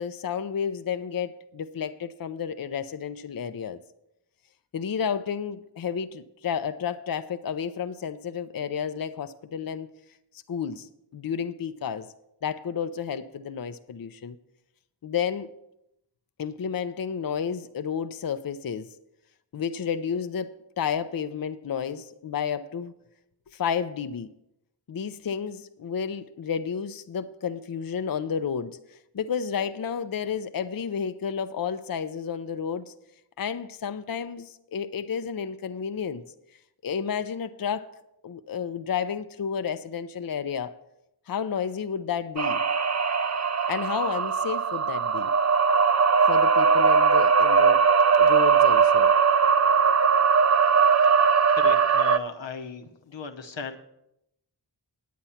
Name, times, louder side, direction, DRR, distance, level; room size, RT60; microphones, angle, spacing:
voice 1, 0.0-3.8 4.7-9.9 10.5-12.1 12.4-14.4 15.0-15.5 16.4-18.9 19.5-22.9 23.5-24.3 24.9-32.9 33.4-36.2 36.8-37.9 38.2-40.7 41.3-42.6 43.7-45.3 46.3-47.8 48.2-49.1, left 7 dB, 55° left, 10 dB, 0.6 m, -31 dB
sound 1, 42.4-52.2, right 6 dB, 35° right, 0.6 m, -20 dB
voice 2, 51.5-53.8, left 5 dB, 90° left, 7 dB, 1.0 m, -37 dB
9.5 x 8.7 x 5.7 m, 0.81 s
wide cardioid pair, 65°, 44 cm